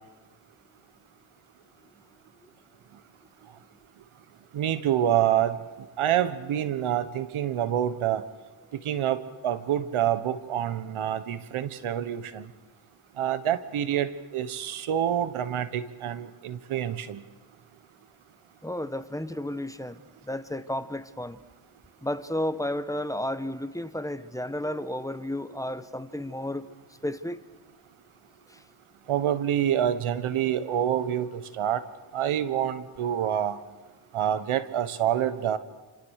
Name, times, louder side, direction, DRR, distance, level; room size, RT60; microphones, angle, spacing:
voice 1, 4.5-5.6 6.0-8.2 8.8-12.5 13.2-17.2 29.1-31.8 32.1-33.6 34.1-35.6, right 10 dB, 80° right, 13 dB, 1.4 m, -27 dB
voice 2, 18.6-21.4 22.0-26.7 27.0-27.4 28.5-28.6, left 1 dB, 5° left, 12 dB, 1.2 m, -32 dB
27.5 x 27.0 x 6.6 m, 1.2 s
cardioid pair, 75°, 49 cm